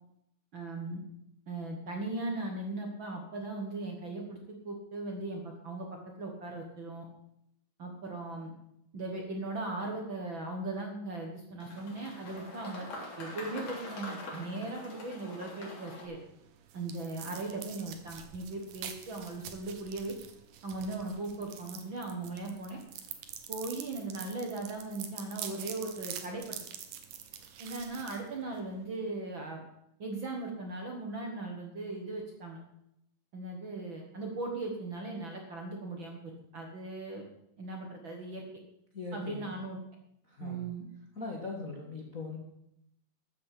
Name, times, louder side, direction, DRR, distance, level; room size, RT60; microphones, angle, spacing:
voice 1, 0.5-1.0 1.5-4.4 4.6-5.9 6.2-7.0 7.8-8.5 8.9-12.9 13.2-16.2 16.7-20.1 20.6-22.8 23.5-26.6 27.6-29.6 30.0-32.6 33.3-37.2 37.6-38.4 39.1-39.8 40.4-40.9, right 2 dB, 50° right, 1 dB, 1.7 m, -38 dB
sound 1, 11.6-16.1, left 2 dB, 55° left, 4.4 m, -44 dB
sound 2, 16.2-28.8, right 9 dB, 75° right, 2.6 m, -46 dB
voice 2, 38.9-39.6 40.3-40.6 41.1-42.4, left 3 dB, 40° left, 0 dB, 1.3 m, -40 dB
13.5 x 7.5 x 7.6 m, 0.79 s
omnidirectional pair, 3.9 m